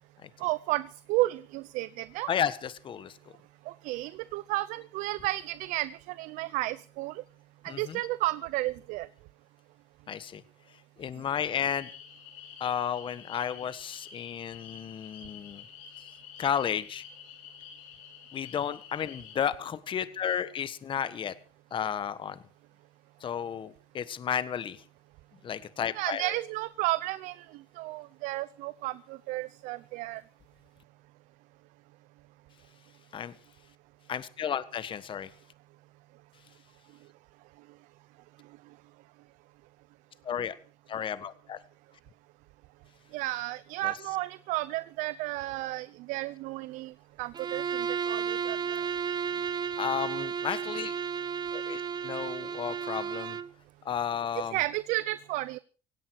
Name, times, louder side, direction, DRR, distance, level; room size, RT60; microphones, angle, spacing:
voice 1, 0.4-2.3 3.7-7.2 7.6-9.1 26.0-30.2 43.1-46.9 47.2-48.8 54.5-55.6, right 18 dB, 75° right, 17 dB, 0.7 m, -32 dB
voice 2, 2.3-3.2 7.7-8.0 10.1-10.4 11.0-11.9 12.6-15.6 16.4-17.0 18.3-21.3 21.7-22.4 23.2-24.8 25.4-26.4 33.1-33.4 34.1-35.3 40.2-40.5 40.9-41.6 43.8-43.9 49.8-50.9 51.5-53.4 53.8-54.6, left 8 dB, 40° left, 14 dB, 1.4 m, -33 dB
sound 1, 11.3-19.4, left 8 dB, 85° left, 7.0 m, -49 dB
Bowed string instrument, 47.3-53.5, right 7 dB, 35° right, 1.1 m, -33 dB
17.0 x 17.0 x 4.7 m, 0.38 s
supercardioid pair, 105°, 13 cm